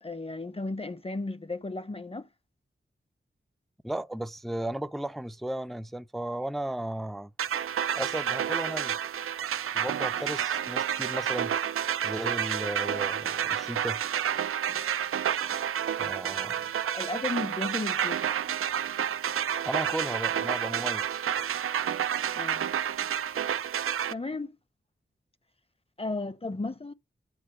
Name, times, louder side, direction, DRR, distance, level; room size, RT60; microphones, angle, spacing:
voice 1, 0.0-2.3 10.0-10.3 14.7-15.0 16.9-18.3 22.3-22.7 24.1-24.6 26.0-26.9, left 2 dB, 25° left, 0.7 m, -35 dB
voice 2, 3.8-7.3 8.0-8.9 9.7-11.6 12.0-14.0 16.0-16.5 19.6-21.2, right 1 dB, ahead, 0.4 m, -35 dB
sound 1, 7.4-24.1, right 9 dB, 85° right, 0.4 m, -30 dB
9.7 x 3.6 x 6.5 m
wide cardioid pair, 65°, 21 cm